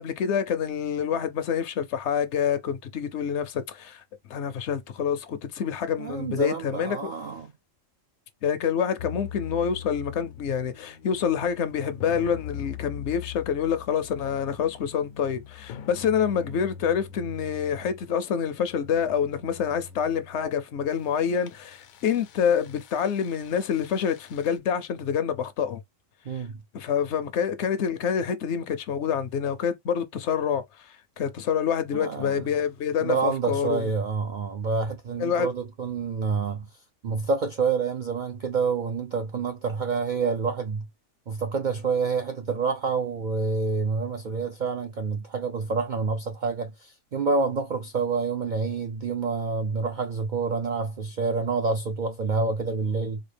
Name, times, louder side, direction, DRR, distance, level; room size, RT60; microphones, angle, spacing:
voice 1, 0.0-4.0 4.3-7.1 8.4-25.8 26.3-26.4 26.7-33.9 35.2-35.5, left 7 dB, 65° left, 0.8 m, -27 dB
voice 2, 6.0-7.5 26.3-26.6 31.9-32.5 33.0-36.7 37.0-40.9 41.3-53.2, right 4 dB, 70° right, 0.4 m, -28 dB
sound 1, 9.0-24.6, left 9 dB, 85° left, 1.0 m, -43 dB
4.1 x 2.3 x 3.2 m
omnidirectional pair, 1.4 m